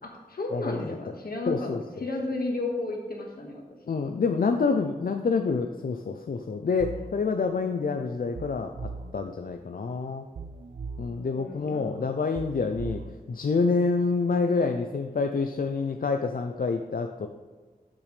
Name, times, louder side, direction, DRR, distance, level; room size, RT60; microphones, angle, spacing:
voice 1, 0.0-1.7 2.0-3.9 6.8-7.1 11.3-11.9, left 2 dB, 85° left, 0 dB, 1.7 m, -33 dB
voice 2, 0.5-0.9 1.5-1.8 3.9-10.3 11.0-13.0 13.3-17.3, left 4 dB, 70° left, 5 dB, 0.5 m, -27 dB
sound 1, 6.8-7.2 8.4-9.2 10.4-11.2 12.4-13.2, right 4 dB, 85° right, 0.4 m, -38 dB
12.0 x 6.1 x 3.3 m, 1.4 s
wide cardioid pair, 90°, 15 cm